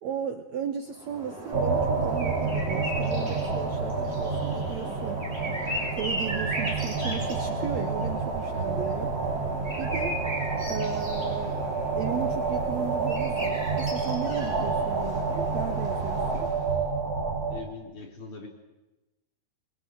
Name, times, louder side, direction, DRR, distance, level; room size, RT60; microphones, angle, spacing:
voice 1, 0.0-5.3 5.9-9.1 9.8-10.2 10.7-11.7 11.9-16.5, right 8 dB, 65° right, 6 dB, 2.0 m, -35 dB
sound 1, 0.9-16.8, right 1 dB, 15° right, 6.1 m, -37 dB
sound 2, 1.5-17.6, right 4 dB, 40° right, 3.9 m, -29 dB
voice 2, 17.5-18.5, left 4 dB, 35° left, 1 dB, 4.6 m, -41 dB
23.0 x 23.0 x 9.2 m, 1.0 s
omnidirectional pair, 4.3 m